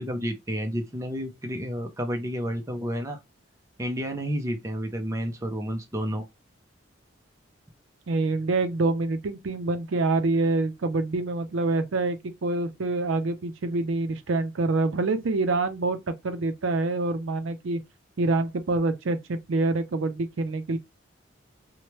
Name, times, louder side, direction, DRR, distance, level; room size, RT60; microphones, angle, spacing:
voice 1, 0.0-3.2 3.8-6.3, equal, 15° right, 0.5 m, -30 dB
voice 2, 8.1-17.8 18.2-20.8, right 2 dB, 85° right, 0.5 m, -26 dB
3.1 x 2.1 x 2.9 m
head